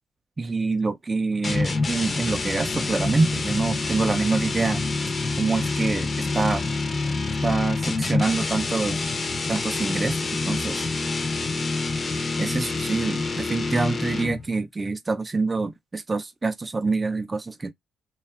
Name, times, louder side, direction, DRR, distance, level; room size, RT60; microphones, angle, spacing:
voice 1, 0.4-4.8 5.4-6.6 7.4-9.0 9.5-10.8 12.1-17.7, right 3 dB, 25° right, 0.3 m, -26 dB
sound 1, 1.4-14.5, left 3 dB, 35° left, 0.5 m, -27 dB
2.7 x 2.2 x 2.2 m
cardioid pair, 90°, 0 cm